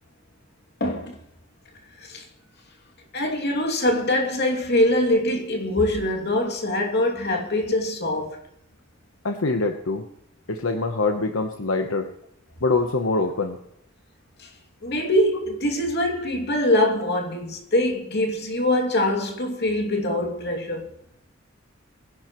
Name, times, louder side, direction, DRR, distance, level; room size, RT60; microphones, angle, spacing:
voice 1, 0.8-1.2 2.1-2.2 3.1-8.4 14.4-14.5 14.8-20.9, left 1 dB, 55° left, 2.7 m, -23 dB
voice 2, 9.2-10.0 10.5-12.1 12.6-13.6, left 3 dB, 85° left, 1.1 m, -24 dB
21.0 x 11.0 x 3.2 m
head